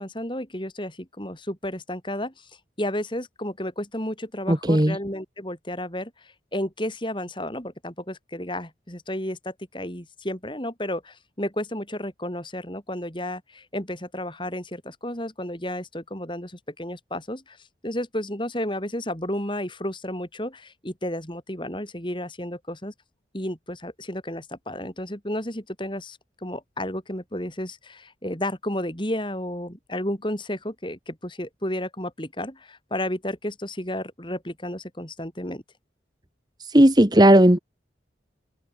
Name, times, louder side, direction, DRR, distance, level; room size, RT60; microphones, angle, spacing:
voice 1, 0.0-2.5 2.8-17.6 17.8-22.9 23.3-35.6, left 1 dB, 25° left, 5.9 m, -32 dB
voice 2, 4.5-5.0 36.7-37.6, right 1 dB, 20° right, 1.6 m, -15 dB
head